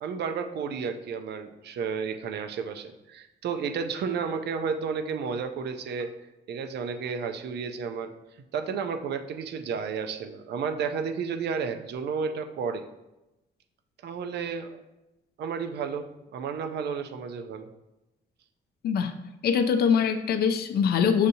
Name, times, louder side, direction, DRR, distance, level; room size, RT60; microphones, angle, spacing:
voice 1, 0.0-6.1 6.5-8.1 8.5-12.8 14.0-14.8 15.4-17.7, right 6 dB, 70° right, 6 dB, 0.4 m, -32 dB
voice 2, 19.4-21.3, left 7 dB, 60° left, 7 dB, 0.4 m, -23 dB
6.5 x 2.6 x 2.7 m, 0.96 s
cardioid pair, 140°, 18 cm